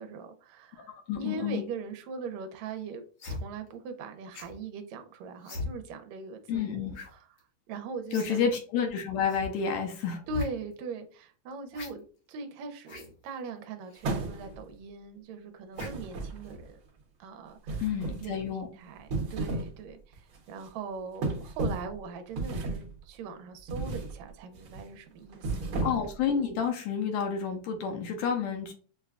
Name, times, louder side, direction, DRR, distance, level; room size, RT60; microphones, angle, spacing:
voice 1, 0.0-3.0 3.3-7.2 7.7-8.4 10.3-16.8 17.2-17.8 18.2-25.9, right 4 dB, 80° right, 6 dB, 1.9 m, -41 dB
voice 2, 1.1-1.6 6.5-7.0 8.1-10.2 17.8-18.7 25.8-28.7, left 7 dB, 80° left, 3 dB, 1.7 m, -30 dB
sound 1, 3.2-3.4 4.3-4.6 5.4-5.7 6.9-7.1 7.4-7.5 8.1-8.3 8.6-8.7 9.3-9.5 10.2-10.5 11.7-11.9 12.8-13.1 13.9-14.0 15.8-16.1 16.5-16.7, left 3 dB, 60° left, 1.8 m, -38 dB
sound 2, 14.0-14.7 15.8-16.7 17.7-18.3 19.0-19.8 20.1-20.4 21.2-21.9 22.4-22.9 23.7-24.1 24.5-24.8 25.3-26.2, right 2 dB, 60° right, 1.5 m, -33 dB
6.6 x 2.2 x 2.4 m, 0.39 s
omnidirectional pair, 3.4 m